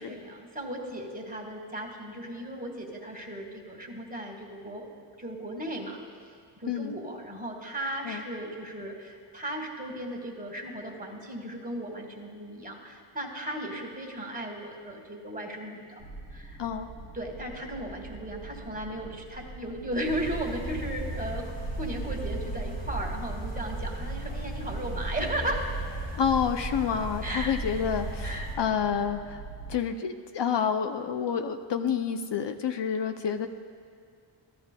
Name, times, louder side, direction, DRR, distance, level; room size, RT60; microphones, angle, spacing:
voice 1, 0.0-4.9 5.2-6.0 6.6-16.0 16.3-16.6 17.1-25.7 27.2-27.6 28.2-28.5, right 1 dB, 20° right, 1 dB, 1.6 m, -36 dB
sound 1, 16.0-29.8, right 3 dB, 40° left, 1.2 m, -45 dB
sound 2, 20.0-28.6, right 1 dB, 90° left, 2.5 m, -35 dB
voice 2, 26.2-29.4 29.7-33.5, left 7 dB, 65° left, 7 dB, 0.6 m, -28 dB
14.0 x 12.5 x 2.2 m, 2.3 s
cardioid pair, 65°, 46 cm